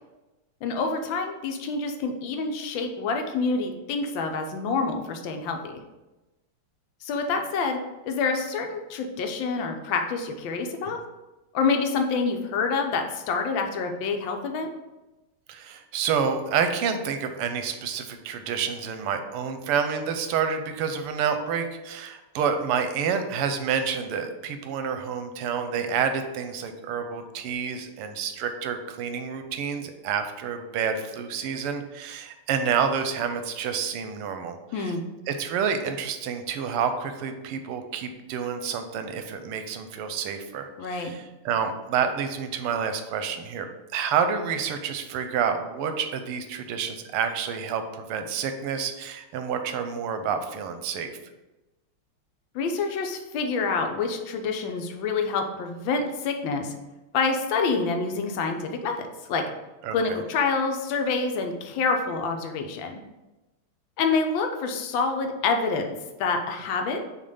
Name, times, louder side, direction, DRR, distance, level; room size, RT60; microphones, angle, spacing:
voice 1, 0.6-5.8 7.0-11.0 11.5-14.7 34.7-35.0 40.8-41.1 52.5-56.7 57.1-59.4 59.9-63.0 64.0-67.0, left 4 dB, 70° left, 4 dB, 1.4 m, -27 dB
voice 2, 15.5-34.9 35.3-51.1 59.8-60.2, right 7 dB, 90° right, 7 dB, 1.6 m, -29 dB
6.4 x 3.0 x 5.4 m, 1.1 s
omnidirectional pair, 2.4 m